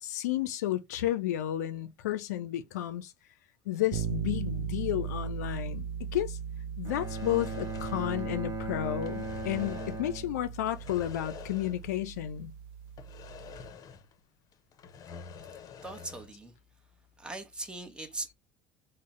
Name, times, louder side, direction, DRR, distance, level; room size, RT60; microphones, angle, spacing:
voice 1, 0.0-3.1 3.7-6.4 6.8-12.5, left 13 dB, 85° left, 0.4 m, -32 dB
sound 1, 3.9-13.7, right 8 dB, 70° right, 0.6 m, -38 dB
Bowed string instrument, 6.8-10.9, right 2 dB, 40° right, 0.9 m, -38 dB
sound 2, 6.9-8.6 8.9-10.1 10.6-12.0 12.3-12.4 13.0-14.2 14.5-16.4, left 6 dB, 45° left, 0.7 m, -48 dB
voice 2, 15.8-16.5 17.2-18.3, right 2 dB, 10° right, 0.9 m, -40 dB
3.9 x 2.1 x 3.5 m
hypercardioid pair, 80°, 9 cm